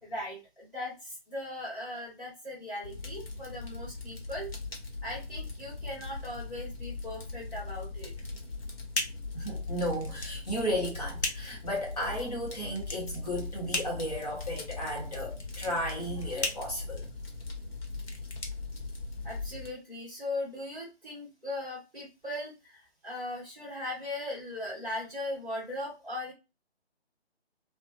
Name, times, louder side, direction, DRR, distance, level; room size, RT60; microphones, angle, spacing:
voice 1, 0.0-4.5 5.0-8.1 19.2-26.3, left 1 dB, ahead, 1.0 m, -38 dB
Fire, 2.8-19.7, left 3 dB, 60° left, 1.0 m, -40 dB
sound 1, 8.1-19.4, left 2 dB, 85° left, 0.7 m, -39 dB
voice 2, 9.3-17.1, equal, 35° left, 0.8 m, -34 dB
2.8 x 2.1 x 2.5 m
figure-of-eight pair, 145°, 32 cm